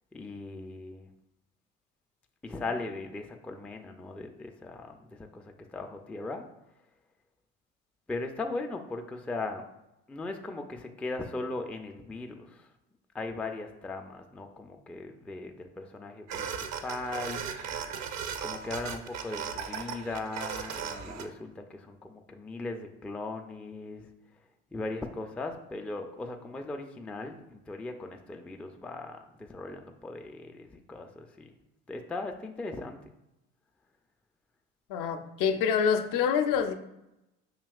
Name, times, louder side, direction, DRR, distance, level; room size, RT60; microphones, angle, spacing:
voice 1, 0.1-1.1 2.4-6.5 8.1-9.6 10.1-12.7 13.1-16.5 16.8-17.4 18.4-24.1 24.7-31.5 31.9-33.0, left 3 dB, 5° left, 4 dB, 0.3 m, -38 dB
sound 1, 16.3-21.3, right 7 dB, 50° right, 0.5 m, -37 dB
voice 2, 34.9-36.7, left 7 dB, 65° left, 6 dB, 0.5 m, -26 dB
5.1 x 2.8 x 2.3 m, 0.89 s
hypercardioid pair, 60°, 35 cm